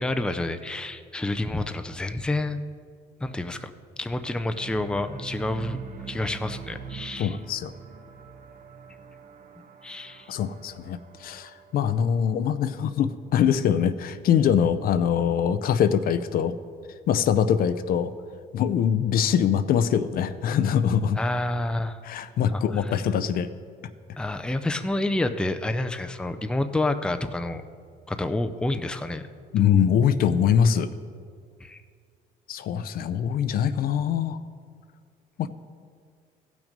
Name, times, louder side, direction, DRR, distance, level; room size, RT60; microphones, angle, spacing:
voice 1, 0.0-2.6 3.2-3.7 4.0-7.4 9.8-10.3 21.2-22.0 22.5-22.9 24.2-27.6 28.1-29.3 31.6-31.8, left 2 dB, 5° left, 8 dB, 0.5 m, -29 dB
sound 1, 4.5-12.7, right 5 dB, 55° right, 1.1 m, -42 dB
voice 2, 7.2-7.7 10.3-16.5 17.1-18.1 18.5-21.2 22.0-23.5 29.5-30.9 32.5-34.4 35.4-35.5, left 8 dB, 60° left, 13 dB, 0.5 m, -23 dB
15.5 x 6.1 x 5.2 m, 2.1 s
cardioid pair, 110°, 17 cm